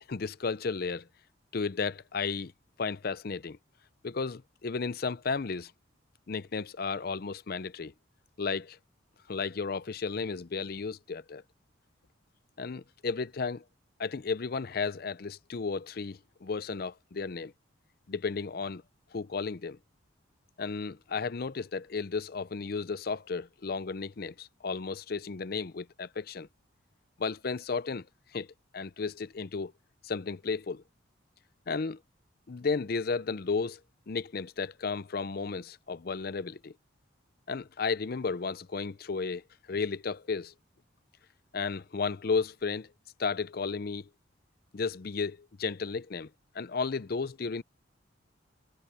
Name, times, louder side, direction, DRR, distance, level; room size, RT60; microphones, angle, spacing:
voice 1, 0.1-1.1 1.5-2.5 2.8-3.6 4.0-5.7 6.3-7.9 8.4-8.8 9.3-11.4 12.6-13.6 14.0-17.5 18.1-18.8 19.1-19.8 20.6-26.5 27.2-28.1 28.3-28.5 28.7-29.7 30.0-30.8 31.7-32.0 32.5-33.8 34.1-36.7 37.5-40.5 41.5-42.9 43.2-44.1 44.7-47.6, left 4 dB, 50° left, 0.5 m, -33 dB
head